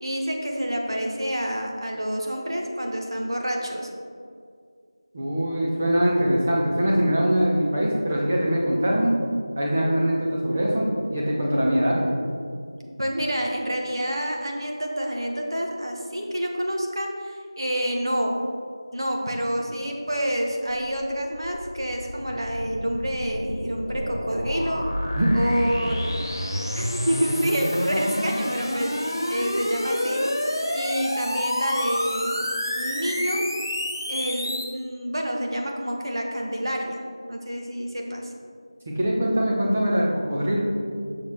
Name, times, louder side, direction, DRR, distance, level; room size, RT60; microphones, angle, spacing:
voice 1, 0.0-3.9 13.0-18.4 18.9-24.9 25.3-26.2 26.7-30.3 30.7-32.4 32.8-33.5 34.1-38.3, equal, 60° right, 0 dB, 1.1 m, -28 dB
voice 2, 5.1-9.1 9.6-12.1 25.2-25.4 38.9-40.6, equal, 10° right, -3 dB, 0.5 m, -22 dB
sound 1, 20.7-34.6, left 1 dB, 50° left, 1.3 m, -29 dB
6.3 x 6.3 x 3.5 m, 2.2 s
figure-of-eight pair, 175°, 3 cm